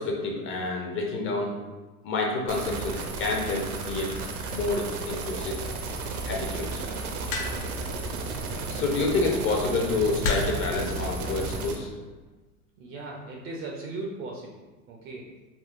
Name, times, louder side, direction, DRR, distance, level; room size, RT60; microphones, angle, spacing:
voice 1, 0.0-1.5 2.0-4.1 4.5-5.6 6.2-6.8 7.5-7.6 7.9-11.9, left 3 dB, 30° left, 0 dB, 0.5 m, -29 dB
sound 1, 2.5-11.8, right 3 dB, 75° right, 0.6 m, -33 dB
sound 2, 7.3-7.8 9.0-9.3 10.2-10.7 11.7-12.0, left 3 dB, 70° left, 0.7 m, -30 dB
voice 2, 12.8-14.6 14.9-15.3, right 2 dB, 30° right, -1 dB, 0.4 m, -37 dB
3.7 x 2.3 x 2.4 m, 1.2 s
hypercardioid pair, 100°, 44 cm